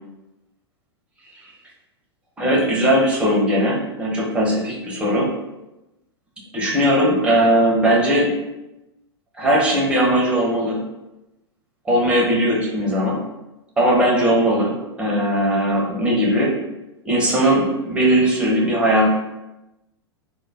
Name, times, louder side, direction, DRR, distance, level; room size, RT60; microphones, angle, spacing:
voice 1, 2.4-5.3 6.5-8.3 9.4-10.8 11.9-13.2 13.8-16.5 17.0-19.1, equal, 10° right, -3 dB, 0.6 m, -19 dB
3.1 x 2.1 x 2.3 m, 0.99 s
figure-of-eight pair, 100°, 14 cm